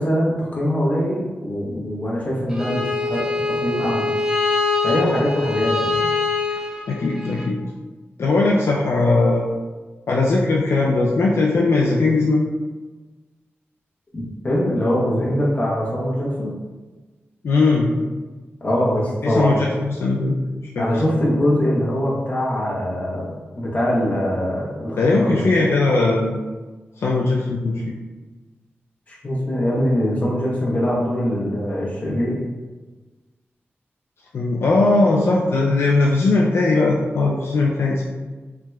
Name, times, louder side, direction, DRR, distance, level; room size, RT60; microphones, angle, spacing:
voice 1, 0.0-4.1 4.8-6.1 14.1-16.5 18.6-19.5 20.8-25.7 29.1-32.4, equal, 35° left, -6 dB, 0.9 m, -22 dB
Bowed string instrument, 2.5-7.5, left 3 dB, 15° right, 0.4 m, -24 dB
voice 2, 6.9-7.6 8.2-9.4 10.1-12.4 17.4-17.9 19.2-20.4 20.7-20.9 25.0-26.4 27.0-27.8 34.3-38.0, left 3 dB, 70° left, -3 dB, 0.4 m, -19 dB
3.3 x 2.8 x 2.3 m, 1.3 s
wide cardioid pair, 100°, 4 cm